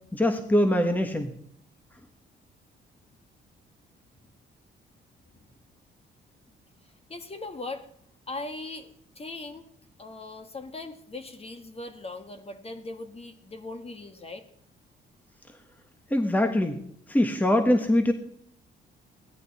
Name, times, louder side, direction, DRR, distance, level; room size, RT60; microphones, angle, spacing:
voice 1, 0.1-1.3 16.1-16.8 17.1-18.1, left 1 dB, 10° left, 6 dB, 1.4 m, -23 dB
voice 2, 7.1-7.9 8.3-9.7 10.0-14.4, left 2 dB, 30° left, 7 dB, 1.8 m, -39 dB
17.0 x 11.5 x 4.2 m, 0.68 s
cardioid pair, 90°, 20 cm